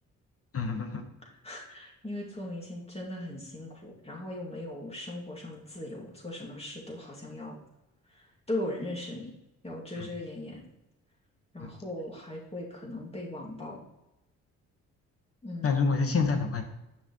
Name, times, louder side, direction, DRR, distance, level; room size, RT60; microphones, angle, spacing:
voice 1, 0.5-1.0 9.9-10.1 11.6-11.7 15.6-16.6, left 4 dB, 35° left, 5 dB, 1.4 m, -27 dB
voice 2, 1.4-7.6 8.1-9.3 9.6-10.7 11.5-13.8 15.4-16.2, left 1 dB, 15° left, -3 dB, 2.5 m, -39 dB
8.7 x 5.8 x 3.2 m, 0.92 s
hypercardioid pair, 45°, 38 cm